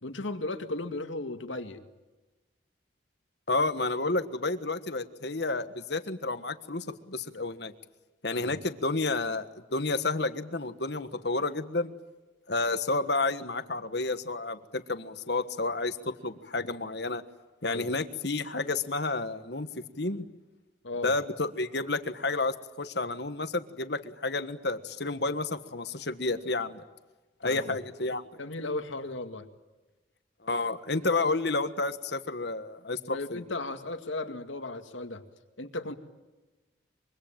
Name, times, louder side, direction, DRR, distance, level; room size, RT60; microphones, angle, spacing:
voice 1, 0.0-1.8 8.3-8.6 17.6-17.9 20.8-21.1 27.4-27.8 28.4-29.5 33.1-35.2 35.6-35.9, left 2 dB, 85° left, 7 dB, 2.2 m, -36 dB
voice 2, 3.5-7.7 8.2-11.9 12.5-17.2 17.6-20.2 21.0-26.8 27.4-28.2 30.4-33.4, left 3 dB, 60° left, 10 dB, 1.5 m, -30 dB
25.0 x 24.0 x 9.0 m, 1.1 s
head